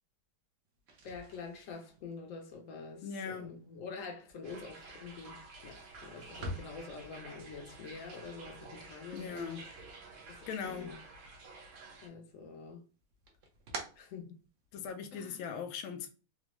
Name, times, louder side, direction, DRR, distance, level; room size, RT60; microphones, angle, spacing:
sound 1, 0.7-10.8 11.1-11.9 12.3-14.9, right 1 dB, 60° right, 0.8 m, -49 dB
voice 1, 1.0-9.6 10.3-11.0 12.0-12.8 14.0-14.3 15.1-15.4, left 4 dB, 60° left, 0.9 m, -46 dB
voice 2, 3.0-3.6 9.1-9.7 10.5-10.9 14.7-16.1, left 6 dB, 90° left, 1.4 m, -40 dB
sound 2, 4.4-12.1, right 3 dB, 80° right, 1.5 m, -51 dB
4.0 x 2.2 x 3.0 m
omnidirectional pair, 2.1 m